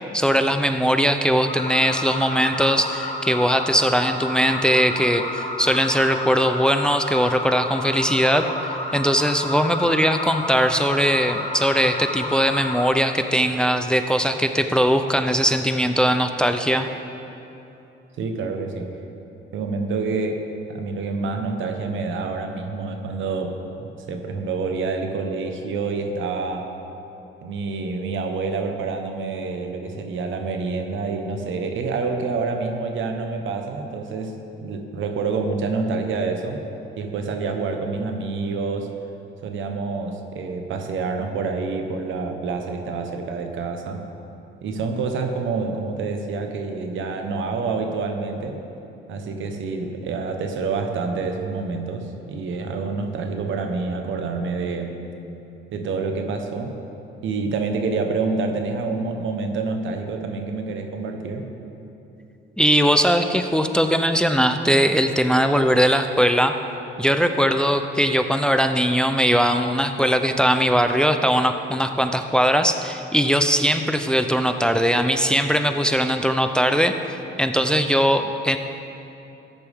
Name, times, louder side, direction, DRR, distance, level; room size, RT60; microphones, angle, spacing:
voice 1, 0.1-16.9 62.6-66.5 67.0-76.9 77.4-78.6, equal, 5° left, 7 dB, 0.5 m, -20 dB
sound 1, 1.5-12.9, left 1 dB, 35° left, 1.4 m, -30 dB
voice 2, 18.2-18.9 19.5-26.7 27.4-36.6 37.0-38.9 39.4-44.0 44.6-48.6 49.1-55.0 55.7-56.8 57.2-61.5, right 4 dB, 75° right, 5 dB, 1.1 m, -27 dB
14.0 x 10.5 x 3.6 m, 2.9 s
cardioid pair, 90°, 20 cm